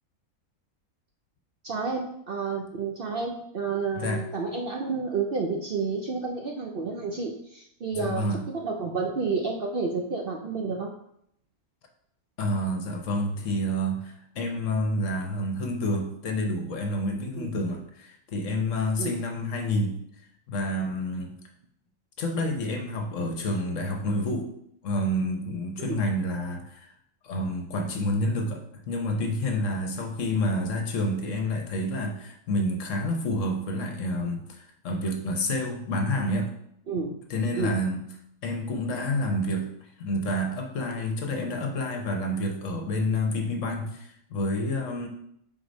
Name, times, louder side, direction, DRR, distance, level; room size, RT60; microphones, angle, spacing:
voice 1, 1.6-10.9 17.4-17.5 19.0-19.1 25.9-26.0 36.9-37.2 37.6-37.7, right 4 dB, 55° right, 0 dB, 0.6 m, -30 dB
voice 2, 3.9-4.3 8.0-8.4 12.4-19.9 20.5-21.3 22.2-24.5 24.8-26.9 27.2-36.5 37.3-38.0 38.4-45.1, left 1 dB, 65° left, 4 dB, 1.1 m, -29 dB
4.7 x 3.9 x 5.2 m, 0.72 s
omnidirectional pair, 1.5 m